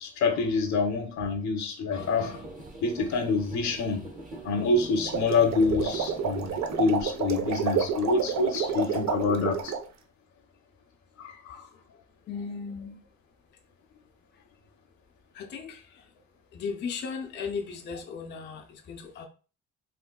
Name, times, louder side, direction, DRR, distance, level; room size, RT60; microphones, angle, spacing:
voice 1, 0.0-2.4 2.8-4.0 4.4-6.5 6.8-9.7 11.2-11.6, left 4 dB, 70° left, 6 dB, 0.7 m, -26 dB
sound 1, 2.0-6.9, right 2 dB, 25° right, 0.8 m, -43 dB
sound 2, 4.9-9.9, right 6 dB, 65° right, 0.5 m, -29 dB
voice 2, 12.2-13.0 14.3-14.4 15.3-16.1 16.5-19.3, left 5 dB, 35° left, 3 dB, 0.4 m, -36 dB
3.7 x 2.2 x 2.3 m, 0.36 s
cardioid pair, 90°, 30 cm